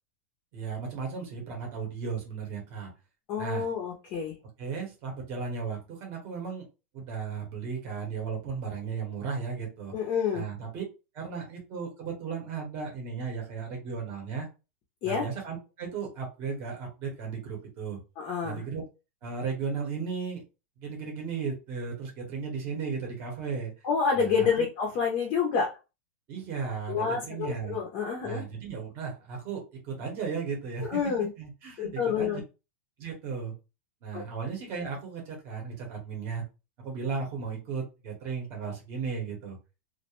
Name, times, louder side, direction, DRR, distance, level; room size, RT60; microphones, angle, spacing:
voice 1, 0.5-2.9 3.4-3.7 4.6-6.7 6.9-9.9 10.3-10.8 11.1-14.5 15.0-18.0 18.4-18.8 19.2-20.4 20.8-23.7 24.1-24.7 26.3-27.8 28.2-31.0 31.4-32.4 33.0-33.5 34.0-36.4 36.8-39.6, right 5 dB, 30° right, 0 dB, 0.8 m, -35 dB
voice 2, 3.3-4.4 9.9-10.5 15.0-15.3 18.2-18.6 23.8-25.7 26.9-28.4 30.8-31.3 31.8-32.4 34.1-34.2, left 6 dB, 30° left, 0 dB, 0.4 m, -28 dB
2.4 x 2.1 x 2.9 m, 0.30 s
supercardioid pair, 175°, 7 cm